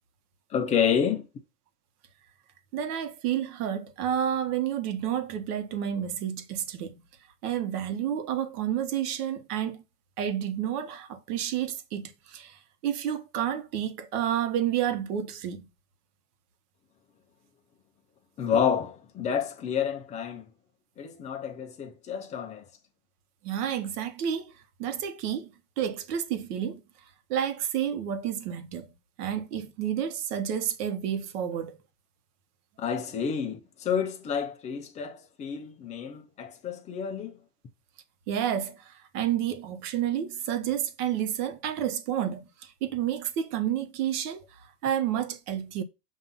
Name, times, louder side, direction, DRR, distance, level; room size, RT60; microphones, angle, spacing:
voice 1, 0.5-1.3 18.4-20.5 21.0-22.7 32.8-37.3, left 7 dB, 15° left, 0.4 m, -29 dB
voice 2, 2.7-7.0 7.4-9.8 10.2-15.6 23.4-24.5 24.8-26.8 27.3-28.9 29.2-31.8 38.3-44.4 44.8-45.8, right 10 dB, 70° right, 1.2 m, -30 dB
7.4 x 2.7 x 5.3 m
supercardioid pair, 160°, 47 cm